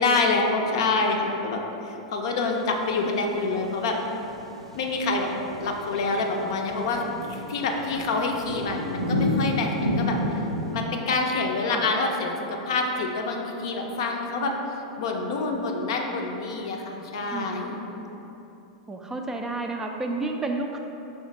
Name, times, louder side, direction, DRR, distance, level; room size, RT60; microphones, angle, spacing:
voice 1, 0.0-4.0 4.8-5.3 5.6-7.0 7.3-10.4 10.7-14.5 15.0-17.8, left 3 dB, 60° left, 2 dB, 0.5 m, -27 dB
sound 1, 3.6-10.8, left 1 dB, 85° right, 0.4 m, -30 dB
voice 2, 17.3-18.1 18.9-20.8, right 2 dB, 15° right, 3 dB, 0.3 m, -31 dB
5.5 x 3.1 x 3.1 m, 3.0 s
figure-of-eight pair, 95°, 3 cm